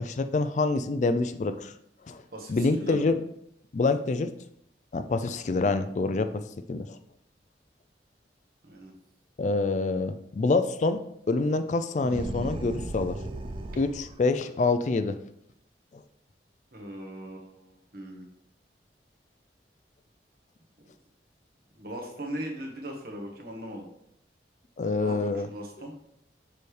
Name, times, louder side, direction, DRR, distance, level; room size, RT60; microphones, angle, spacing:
voice 1, 0.0-1.7 2.0-2.2 2.5-3.2 3.7-4.3 4.9-6.3 6.7-7.0 9.4-11.0 11.3-13.2 13.8-15.2 15.9-16.0 24.8-25.5, left 3 dB, 45° left, 10 dB, 0.3 m, -26 dB
voice 2, 2.3-3.1 8.6-8.9 16.7-18.2 21.7-23.9 25.0-25.9, right 1 dB, 55° right, 1 dB, 1.3 m, -39 dB
sound 1, 12.0-14.2, right 2 dB, 30° right, 0.4 m, -36 dB
6.8 x 4.9 x 3.2 m, 0.74 s
head